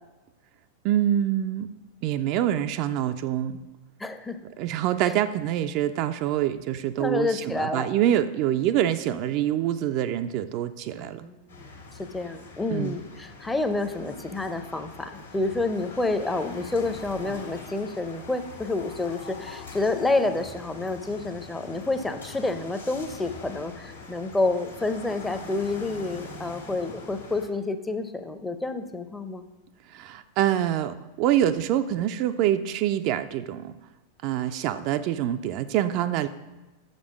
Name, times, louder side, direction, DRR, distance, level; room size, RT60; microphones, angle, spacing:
voice 1, 0.8-1.7 2.0-3.6 4.6-11.3 12.7-13.0 29.9-33.8 34.2-36.3, right 11 dB, 45° right, 9 dB, 0.3 m, -25 dB
voice 2, 4.0-4.4 5.0-5.1 7.0-7.9 11.0-29.4, left 2 dB, 10° left, 8 dB, 0.6 m, -29 dB
sound 1, 11.5-27.5, left 4 dB, 75° left, 1.6 m, -43 dB
6.4 x 5.2 x 6.0 m, 1.1 s
figure-of-eight pair, 90°, 0 cm